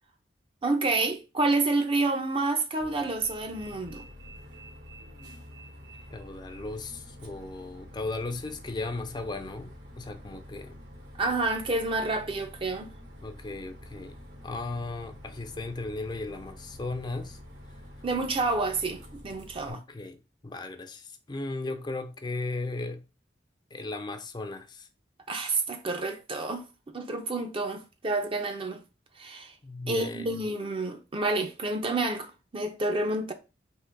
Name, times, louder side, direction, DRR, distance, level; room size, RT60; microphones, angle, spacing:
voice 1, 0.6-4.0 11.2-12.9 18.0-19.8 25.3-26.6 26.9-28.8 29.2-29.5 29.9-33.3, right 2 dB, 30° right, 0.6 m, -29 dB
Bus, 2.8-19.7, equal, 65° right, 1.3 m, -47 dB
voice 2, 6.1-10.8 13.2-14.2 14.4-17.4 19.7-23.0 23.7-24.9 29.6-30.4, left 2 dB, 25° left, 0.5 m, -36 dB
3.7 x 2.9 x 4.4 m
head